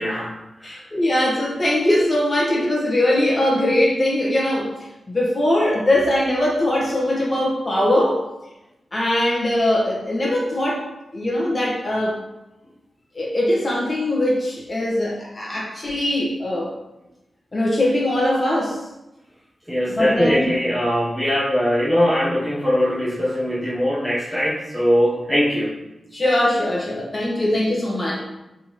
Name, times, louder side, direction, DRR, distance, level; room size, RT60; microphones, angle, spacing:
voice 1, 0.0-0.8 19.7-25.8, equal, 5° right, -8 dB, 0.9 m, -21 dB
voice 2, 0.6-4.7 5.1-8.2 8.9-10.8 11.1-12.2 13.1-16.7 17.5-18.8 19.9-20.4 26.1-28.2, left 1 dB, 25° left, -4 dB, 1.1 m, -21 dB
4.2 x 3.6 x 3.0 m, 0.95 s
wide cardioid pair, 145°, 0 cm